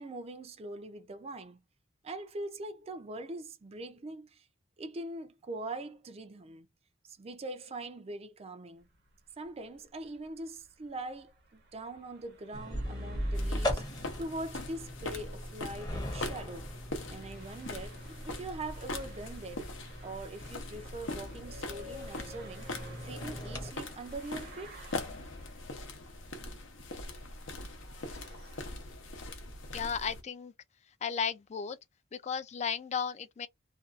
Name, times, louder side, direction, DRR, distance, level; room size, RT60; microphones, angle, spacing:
voice 1, 0.0-1.6 2.0-4.5 4.8-6.7 7.0-8.9 9.4-16.7 17.1-19.7 20.0-22.7 23.0-24.8, right 2 dB, 30° right, 0.4 m, -42 dB
sound 1, 8.8-28.6, equal, 60° right, 0.8 m, -55 dB
sound 2, 12.5-23.7, equal, 20° left, 0.7 m, -39 dB
sound 3, 13.3-30.2, left 2 dB, 75° left, 0.7 m, -42 dB
voice 2, 29.7-30.5 31.0-31.8 32.1-33.5, left 7 dB, 35° left, 0.3 m, -34 dB
2.5 x 2.3 x 2.4 m
head